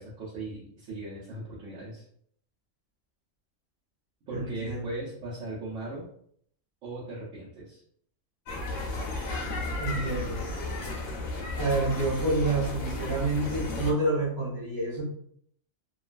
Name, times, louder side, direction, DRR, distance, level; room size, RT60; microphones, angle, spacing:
voice 1, 0.0-2.0 4.3-6.1 6.8-7.8, right 2 dB, 70° right, -7 dB, 1.0 m, -38 dB
voice 2, 4.3-5.0 9.8-10.4 11.6-15.0, right 2 dB, 20° left, -8 dB, 0.9 m, -28 dB
sound 1, 8.5-13.9, left 2 dB, 75° left, 1.1 m, -33 dB
3.0 x 2.3 x 2.4 m, 0.65 s
omnidirectional pair, 1.4 m